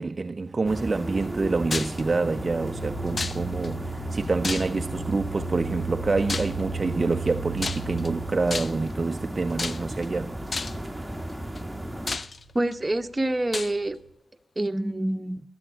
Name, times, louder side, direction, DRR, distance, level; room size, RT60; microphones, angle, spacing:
voice 1, 0.0-10.4, right 3 dB, 45° right, 0.5 m, -27 dB
sound 1, 0.6-12.2, right 1 dB, 5° right, 1.3 m, -34 dB
sound 2, 1.6-14.1, right 5 dB, 75° left, 5.7 m, -40 dB
sound 3, 1.7-2.0 3.2-3.7 4.4-5.0 6.3-6.6 7.6-8.1 8.5-8.9 9.6-10.0 10.5-10.9 11.5-11.6 12.1-12.7 13.5-13.7, left 4 dB, 50° left, 0.5 m, -31 dB
voice 2, 12.5-14.0 14.6-15.4, right 1 dB, 25° right, 1.0 m, -26 dB
20.0 x 7.9 x 7.6 m
supercardioid pair, 45°, 0 cm